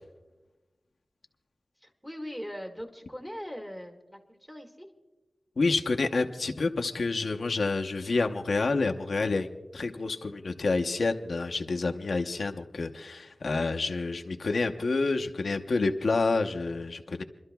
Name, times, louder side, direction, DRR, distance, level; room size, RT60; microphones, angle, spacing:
voice 1, 1.8-4.9, equal, 5° right, 2 dB, 1.7 m, -40 dB
voice 2, 5.6-9.5 9.7-17.2, left 3 dB, 80° left, 4 dB, 0.7 m, -28 dB
28.5 x 12.5 x 2.3 m, 1.1 s
wide cardioid pair, 95°, 0 cm